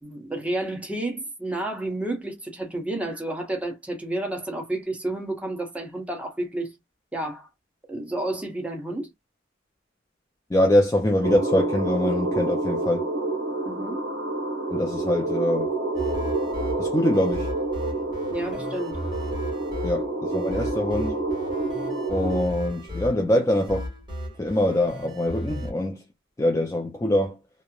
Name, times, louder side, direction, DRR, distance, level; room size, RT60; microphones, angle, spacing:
voice 1, 0.0-6.7 7.1-7.5 7.9-9.1 13.6-14.0 18.3-19.0, right 1 dB, 5° right, 0.9 m, -30 dB
voice 2, 10.5-13.0 14.7-15.7 16.8-17.5 19.8-21.2 22.1-23.9 24.4-26.0 26.4-27.4, left 1 dB, 15° left, 0.4 m, -24 dB
sound 1, 11.2-22.4, right 2 dB, 75° right, 0.9 m, -28 dB
sound 2, 15.9-25.7, equal, 25° right, 1.4 m, -35 dB
3.0 x 2.1 x 2.3 m
head